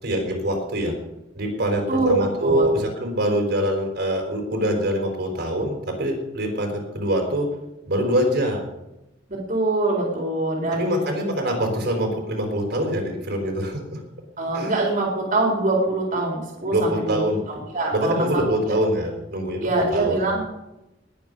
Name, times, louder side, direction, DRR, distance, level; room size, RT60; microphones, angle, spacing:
voice 1, 0.0-0.9 1.3-7.5 7.9-8.7 10.7-14.0 14.5-14.7 16.7-17.4 17.9-20.2, equal, 65° right, 2 dB, 4.5 m, -24 dB
voice 2, 9.3-10.8 14.4-17.2 17.5-18.4 19.6-20.5, right 2 dB, 45° right, -2 dB, 4.1 m, -24 dB
20.5 x 9.1 x 5.5 m, 0.93 s
head